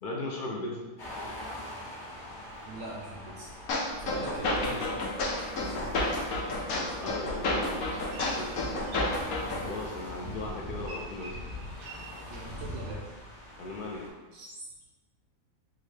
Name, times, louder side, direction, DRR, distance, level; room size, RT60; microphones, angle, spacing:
voice 1, 0.0-0.9 6.7-8.6 9.6-11.4 13.6-14.1, left 2 dB, 65° left, -1 dB, 0.5 m, -38 dB
sound 1, 1.0-14.1, equal, 40° left, 0.9 m, -44 dB
voice 2, 2.7-3.5 4.0-5.1 5.6-6.0 12.3-13.1 14.3-14.6, right 2 dB, 65° right, -2 dB, 0.8 m, -41 dB
sound 2, 3.7-9.7, left 2 dB, 85° left, 1.1 m, -31 dB
Boat Water vehicle, 5.9-13.0, left 1 dB, 85° right, 1.1 m, -42 dB
3.8 x 2.2 x 3.2 m, 1.2 s
omnidirectional pair, 1.5 m